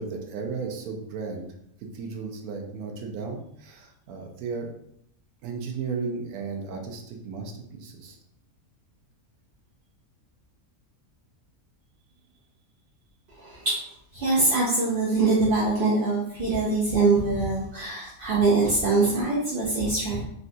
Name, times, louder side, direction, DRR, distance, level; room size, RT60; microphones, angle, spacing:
voice 1, 0.0-1.5 1.9-4.7 5.4-8.2, right 4 dB, 85° right, 2 dB, 1.1 m, -34 dB
voice 2, 13.4-13.7 14.1-20.3, right 3 dB, 55° right, -5 dB, 0.6 m, -23 dB
3.8 x 2.2 x 2.6 m, 0.74 s
omnidirectional pair, 1.5 m